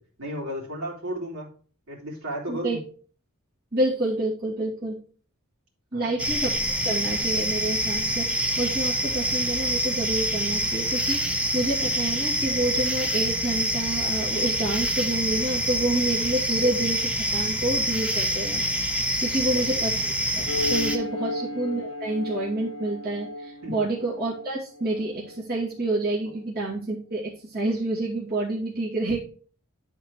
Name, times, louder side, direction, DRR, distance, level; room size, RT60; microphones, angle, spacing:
voice 1, 0.2-1.5 1.9-2.8 5.9-6.1 19.2-19.9 23.6-23.8, equal, 75° right, -3 dB, 3.4 m, -34 dB
voice 2, 2.5-2.8 3.7-5.0 5.9-6.6 6.8-18.9 19.2-29.2, right 1 dB, 45° right, -6 dB, 2.4 m, -28 dB
sound 1, 6.2-21.0, right 1 dB, 5° right, 0.9 m, -26 dB
sound 2, 20.5-25.4, left 1 dB, 85° left, 0.9 m, -34 dB
11.0 x 4.3 x 4.6 m, 0.42 s
head